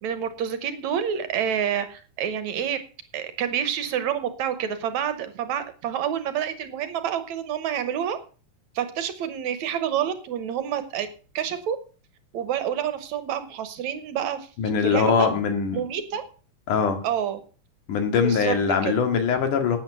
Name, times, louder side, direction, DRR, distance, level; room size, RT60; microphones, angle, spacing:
voice 1, 0.0-2.8 3.1-8.2 8.8-11.1 11.4-11.8 12.3-14.5 14.8-15.3 15.7-16.2 17.0-17.4 18.2-18.6 18.8-18.9, right 9 dB, 70° right, 11 dB, 2.2 m, -28 dB
voice 2, 14.6-15.8 16.7-17.0 17.9-19.8, left 6 dB, 75° left, 6 dB, 3.5 m, -22 dB
12.0 x 8.8 x 6.8 m, 0.38 s
omnidirectional pair, 3.7 m